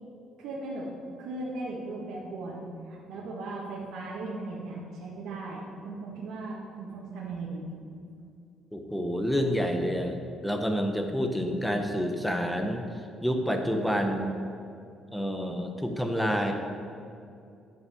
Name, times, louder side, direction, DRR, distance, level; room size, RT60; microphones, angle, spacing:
voice 1, 0.4-0.9 1.2-7.7, right 2 dB, 90° right, -6 dB, 1.8 m, -37 dB
voice 2, 8.7-12.8 13.2-14.4 15.1-16.5, equal, ahead, 4 dB, 0.8 m, -28 dB
11.0 x 5.6 x 6.9 m, 2.5 s
cardioid pair, 180°, 0 cm